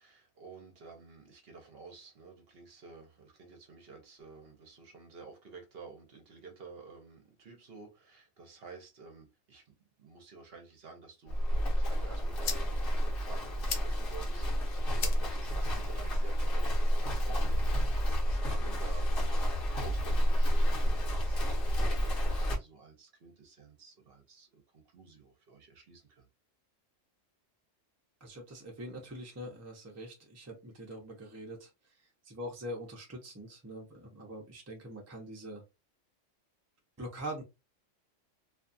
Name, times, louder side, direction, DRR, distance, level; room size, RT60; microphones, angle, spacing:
voice 1, 0.0-14.5 14.7-26.3, right 4 dB, 55° right, 0.9 m, -52 dB
Livestock farm animals working animals, 11.3-22.6, equal, 50° left, 0.9 m, -29 dB
sound 1, 11.8-17.8, left 7 dB, 90° left, 1.0 m, -44 dB
voice 2, 28.2-35.6 37.0-37.4, equal, 20° right, 0.5 m, -43 dB
2.5 x 2.3 x 2.6 m
omnidirectional pair, 1.3 m